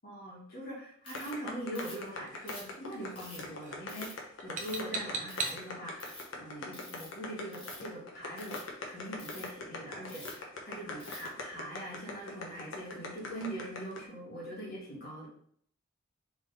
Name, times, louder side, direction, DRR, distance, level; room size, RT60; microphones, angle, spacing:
voice 1, 0.0-8.6 8.9-15.3, right 1 dB, 50° left, -4 dB, 1.7 m, -42 dB
Ratchet pawl, 1.0-1.3 1.7-2.1 2.5-3.4 3.9-4.1 4.6-4.9 5.3-5.6 5.9-6.2 6.7-7.1 7.5-7.9 8.3-8.6 9.2-9.5 10.1-10.4 11.0-11.3, left 2 dB, 25° left, 1.5 m, -47 dB
sound 1, 1.1-14.0, left 3 dB, 80° left, 0.9 m, -41 dB
sound 2, 1.2-1.5 2.3-2.6 2.9-3.2 3.5-3.8 4.4-5.7, right 3 dB, 40° right, 0.6 m, -39 dB
3.7 x 3.5 x 4.0 m, 0.63 s
head